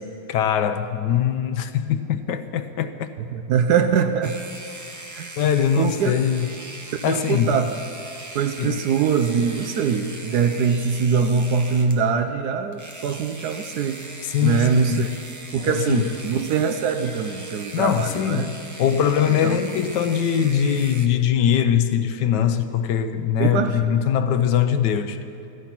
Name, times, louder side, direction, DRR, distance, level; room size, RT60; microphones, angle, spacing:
voice 1, 0.3-3.1 5.4-6.5 7.0-7.6 8.6-8.8 14.2-15.1 15.6-16.1 17.7-18.5 18.8-25.2, left 9 dB, 90° left, 8 dB, 1.3 m, -22 dB
voice 2, 3.3-4.4 5.1-5.3 5.8-6.1 7.1-7.7 8.3-14.1 14.4-15.1 15.5-18.5 19.4-19.6 23.4-23.9, right 6 dB, 70° right, 7 dB, 1.2 m, -22 dB
sound 1, 4.2-12.0 12.7-21.1, right 2 dB, 20° right, 0.5 m, -40 dB
16.0 x 13.0 x 5.9 m, 2.7 s
omnidirectional pair, 1.8 m